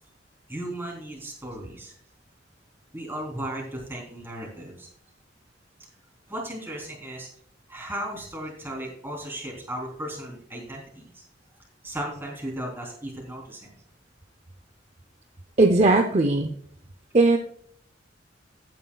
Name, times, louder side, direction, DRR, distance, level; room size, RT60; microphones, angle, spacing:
voice 1, 0.5-1.9 2.9-4.9 6.3-7.3 7.7-11.2 11.8-13.8, right 1 dB, 10° right, -1 dB, 3.4 m, -36 dB
voice 2, 15.6-16.5 17.1-17.4, right 2 dB, 35° right, 5 dB, 0.6 m, -18 dB
15.0 x 9.2 x 2.3 m, 0.63 s
head